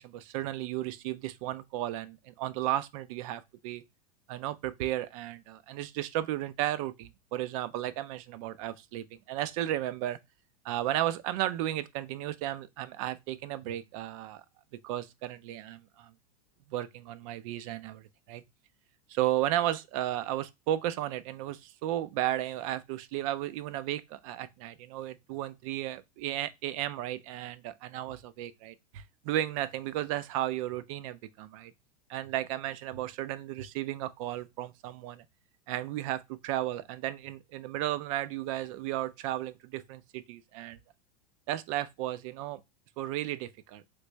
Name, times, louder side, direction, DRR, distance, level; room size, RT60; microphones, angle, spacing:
voice 1, 0.0-3.8 4.3-10.2 10.6-14.4 14.8-16.1 16.7-18.4 19.1-31.7 32.1-35.2 35.7-40.8 41.5-42.6 43.0-43.8, right 13 dB, 60° right, 0.4 m, -34 dB
3.2 x 2.5 x 3.1 m
supercardioid pair, 120°, 19 cm